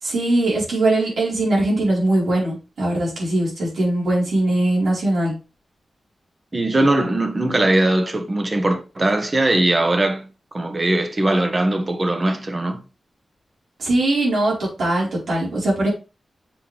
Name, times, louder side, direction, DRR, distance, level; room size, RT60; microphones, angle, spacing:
voice 1, 0.0-5.3 13.8-15.9, right 1 dB, 85° right, 4.7 m, -21 dB
voice 2, 6.5-10.3 10.5-12.8, right 1 dB, 30° right, 1.2 m, -20 dB
7.7 x 5.3 x 3.5 m
wide cardioid pair, 115°, 0 cm